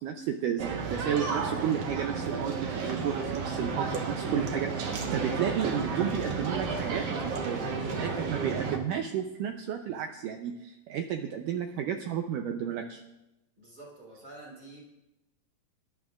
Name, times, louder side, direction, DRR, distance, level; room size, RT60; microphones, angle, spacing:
voice 1, 0.0-4.8 5.1-7.1 7.4-13.0, right 9 dB, 80° right, 5 dB, 2.0 m, -32 dB
sound 1, 0.6-8.8, right 4 dB, 60° right, 1.7 m, -32 dB
voice 2, 13.6-14.8, right 2 dB, 25° right, -3 dB, 3.8 m, -48 dB
25.0 x 12.0 x 2.5 m, 0.94 s
omnidirectional pair, 4.4 m